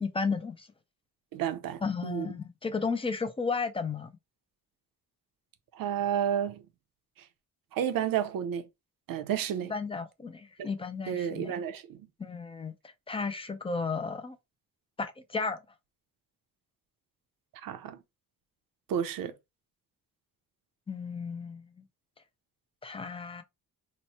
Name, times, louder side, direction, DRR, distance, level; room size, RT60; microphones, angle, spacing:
voice 1, 0.0-0.7 1.8-4.1 9.7-11.5 12.2-12.7 13.1-14.4 15.0-15.6 20.9-21.8 22.8-23.4, left 4 dB, 15° left, 0.3 m, -33 dB
voice 2, 1.3-2.3 5.7-6.6 7.7-8.7 9.1-9.7 10.6-10.7 11.1-12.0 17.6-18.0 18.9-19.3, right 9 dB, 75° right, 0.7 m, -31 dB
3.0 x 2.1 x 4.1 m
cardioid pair, 155°, 35 cm